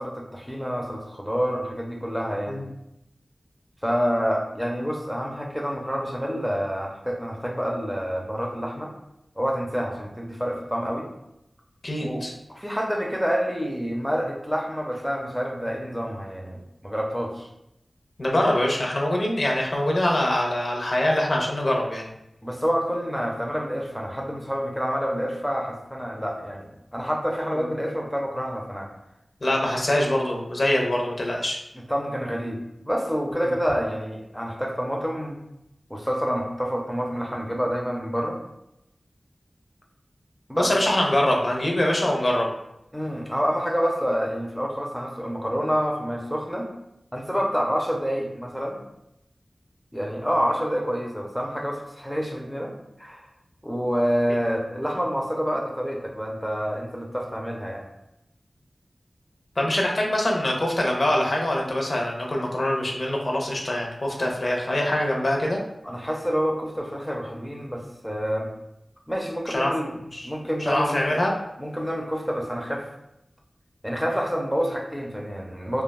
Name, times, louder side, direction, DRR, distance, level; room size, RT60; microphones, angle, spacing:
voice 1, 0.0-2.7 3.8-8.9 9.4-11.1 12.0-12.2 12.5-17.5 22.4-28.9 31.9-35.4 35.9-38.4 40.5-40.7 42.9-46.7 47.1-48.8 49.9-52.7 53.0-53.3 53.6-57.9 65.8-68.5 69.1-69.9 70.2-71.2 71.6-72.9 73.8-75.8, equal, ahead, 0 dB, 0.4 m, -28 dB
voice 2, 11.8-12.3 18.2-22.0 29.4-31.6 40.6-42.5 59.6-65.6 69.5-69.7 70.1-70.3 70.6-71.3, left 1 dB, 55° left, -1 dB, 0.5 m, -24 dB
3.3 x 2.2 x 2.2 m, 0.84 s
wide cardioid pair, 80°, 0 cm